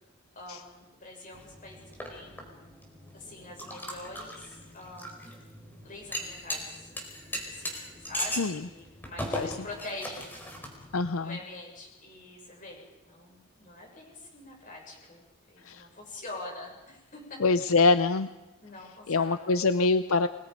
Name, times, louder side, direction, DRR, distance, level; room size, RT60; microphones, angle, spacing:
voice 1, 0.4-2.5 3.1-5.4 5.8-6.9 7.5-10.7 11.2-15.2 15.5-17.4 18.6-19.5, left 2 dB, 40° left, 0 dB, 6.9 m, -45 dB
sound 1, 1.3-11.0, equal, 10° left, 4.5 m, -39 dB
voice 2, 10.9-11.4 15.7-15.8 17.4-18.3 19.1-20.3, left 3 dB, 75° left, 11 dB, 0.7 m, -24 dB
30.0 x 21.0 x 5.3 m, 1.1 s
head